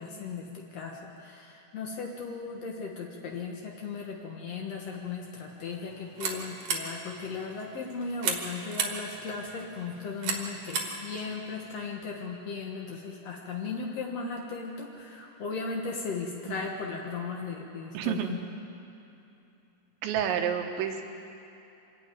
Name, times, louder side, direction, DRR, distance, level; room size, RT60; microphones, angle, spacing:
voice 1, 0.0-18.4, left 4 dB, 80° left, -1 dB, 1.4 m, -37 dB
sound 1, 5.7-11.9, right 5 dB, 55° right, 2.4 m, -36 dB
voice 2, 17.9-18.4 20.0-21.0, right 9 dB, 80° right, 5 dB, 3.4 m, -29 dB
25.5 x 11.0 x 9.3 m, 2.9 s
omnidirectional pair, 5.3 m